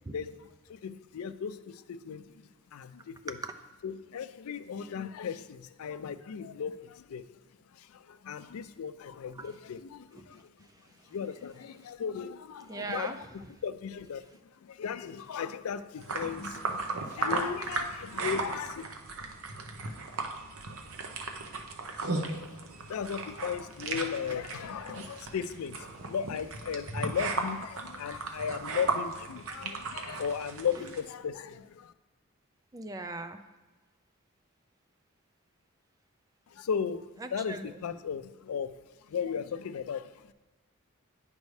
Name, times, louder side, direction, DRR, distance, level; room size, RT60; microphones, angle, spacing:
voice 1, 0.1-2.4 2.7-3.4 3.8-7.2 7.7-10.5 11.1-14.2 14.6-18.8 22.2-31.9 36.5-38.7 39.1-40.3, left 7 dB, 85° left, 13 dB, 0.4 m, -36 dB
voice 2, 10.2-11.2 11.8-11.9 12.7-13.2 19.6-19.8 30.7-30.9 32.7-33.4 37.2-37.8, right 3 dB, 15° right, 8 dB, 0.3 m, -41 dB
sound 1, 16.0-31.0, right 3 dB, 75° right, 0.7 m, -36 dB
9.4 x 5.3 x 3.2 m, 1.2 s
head